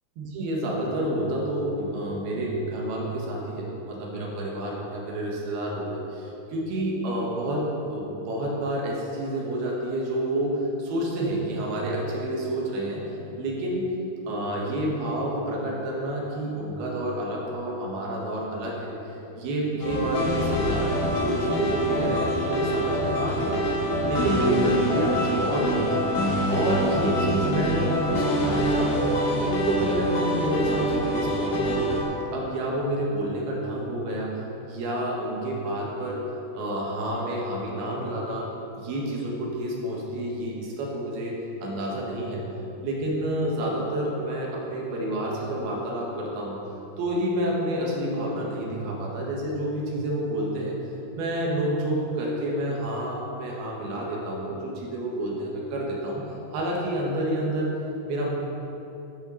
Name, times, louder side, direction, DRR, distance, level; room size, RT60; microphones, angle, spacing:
voice 1, 0.2-7.6 7.9-13.0 13.4-13.9 14.3-23.6 24.0-26.0 26.5-29.1 29.4-32.0 32.3-36.2 36.6-38.5 38.8-42.5 42.8-46.6 47.0-50.8 51.1-56.2 56.5-57.7 58.1-58.3, right 1 dB, 75° right, -3 dB, 3.4 m, -29 dB
sound 1, 19.8-32.0, equal, 80° left, 4.0 m, -25 dB
12.5 x 5.9 x 5.5 m, 3.0 s
omnidirectional pair, 4.6 m